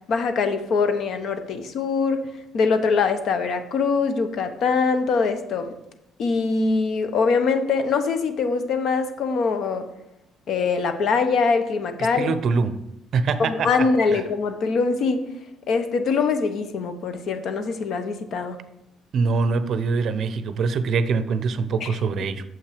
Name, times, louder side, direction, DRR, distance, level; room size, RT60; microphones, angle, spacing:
voice 1, 0.1-2.3 2.5-5.8 6.2-9.9 10.5-12.3 13.4-15.2 15.7-18.6 21.8-21.9, left 4 dB, 55° left, 9 dB, 0.9 m, -23 dB
voice 2, 12.2-12.8 13.1-13.7 14.1-14.2 19.1-22.4, right 4 dB, 50° right, 12 dB, 0.6 m, -23 dB
7.3 x 5.9 x 5.0 m, 0.85 s
cardioid pair, 145°, 0 cm